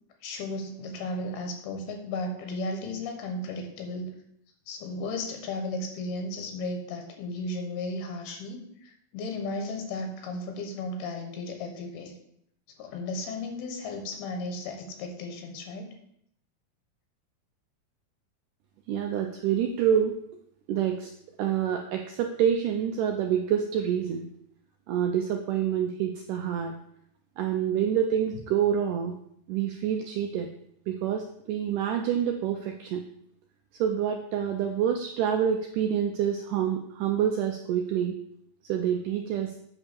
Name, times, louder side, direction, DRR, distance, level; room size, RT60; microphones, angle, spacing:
voice 1, 0.2-4.1 4.7-12.1 12.8-16.0, left 2 dB, 85° left, 4 dB, 3.2 m, -35 dB
voice 2, 18.9-20.2 20.7-21.1 21.4-24.3 24.9-26.7 27.4-29.2 29.5-30.5 30.9-33.0 33.8-38.2 38.6-39.5, right 9 dB, 85° right, 4 dB, 1.8 m, -27 dB
8.5 x 3.6 x 6.8 m, 0.71 s
omnidirectional pair, 4.4 m